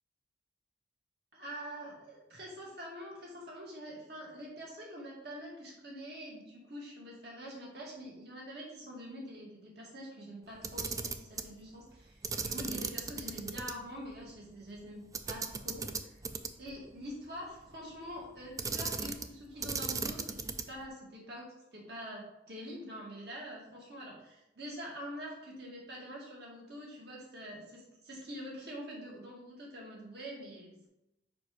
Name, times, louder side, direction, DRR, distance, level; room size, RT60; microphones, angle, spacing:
voice 1, 1.3-16.2 16.6-30.9, equal, 65° right, -3 dB, 2.0 m, -45 dB
Camera, 10.5-11.5 12.2-13.7 14.1-14.2 15.1-16.7 18.6-19.3 19.6-20.8, right 5 dB, 20° right, 0.3 m, -37 dB
5.0 x 5.0 x 4.7 m, 0.90 s
head